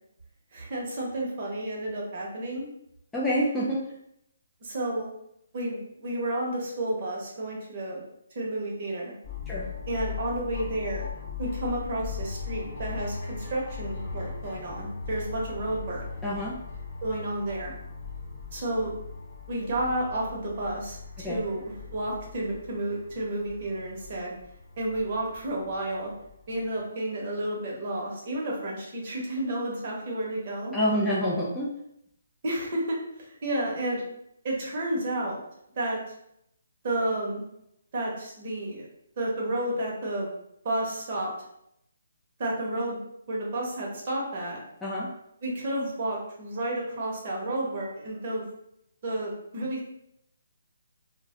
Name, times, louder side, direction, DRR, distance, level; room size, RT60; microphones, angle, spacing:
voice 1, 0.5-2.7 4.6-5.1 5.5-8.0 8.3-9.1 9.9-11.1 11.4-16.0 17.0-17.7 18.5-18.9 19.5-21.6 21.9-24.3 24.8-26.1 26.5-30.8 32.4-34.0 34.4-35.4 35.8-36.0 36.8-37.4 37.9-38.9 39.2-40.3 40.6-41.3 42.4-43.0 43.3-44.6 45.4-48.5 49.0-49.9, right 1 dB, 40° right, -3 dB, 1.0 m, -31 dB
voice 2, 3.1-3.8 9.5-9.7 16.2-16.6 21.2-21.4 30.7-31.7 44.8-45.1, equal, 5° left, -7 dB, 0.3 m, -27 dB
sound 1, 9.2-26.8, left 5 dB, 20° left, 0.7 m, -39 dB
2.3 x 2.1 x 3.6 m, 0.77 s
hypercardioid pair, 160°, 0 cm